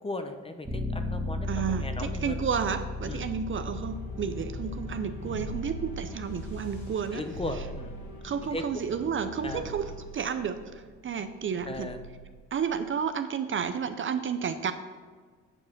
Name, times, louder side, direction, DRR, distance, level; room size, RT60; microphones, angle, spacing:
voice 1, 0.0-2.4 3.0-3.3 7.1-8.0 8.5-8.6 9.4-9.7 11.7-12.0, left 2 dB, 20° left, 7 dB, 0.8 m, -37 dB
Bass guitar, 0.7-6.9, left 2 dB, 5° right, 1.6 m, -36 dB
voice 2, 1.5-7.2 8.2-9.8 10.1-11.9 12.5-14.7, right 7 dB, 40° right, 10 dB, 0.5 m, -31 dB
sound 1, 3.6-13.0, equal, 70° left, 2.1 m, -43 dB
8.8 x 4.8 x 5.8 m, 1.5 s
cardioid pair, 90°, 30 cm